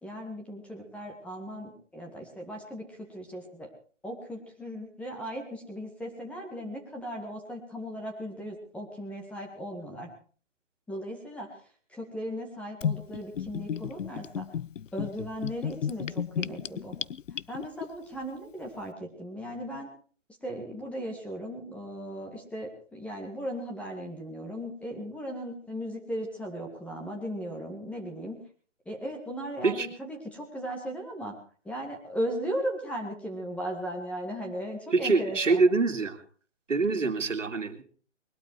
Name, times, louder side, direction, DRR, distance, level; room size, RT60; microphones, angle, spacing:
voice 1, 0.0-3.7 4.0-10.1 10.9-11.6 11.9-14.5 14.9-17.0 17.5-19.9 20.4-28.4 28.9-31.3 31.6-35.6, equal, 5° left, 1 dB, 2.0 m, -37 dB
Gurgling / Bathtub (filling or washing), 12.8-17.9, left 8 dB, 80° left, 0.6 m, -33 dB
voice 2, 34.9-36.2 36.7-37.8, right 4 dB, 80° right, 7 dB, 2.3 m, -25 dB
21.0 x 12.0 x 4.7 m, 0.42 s
hypercardioid pair, 145°, 37 cm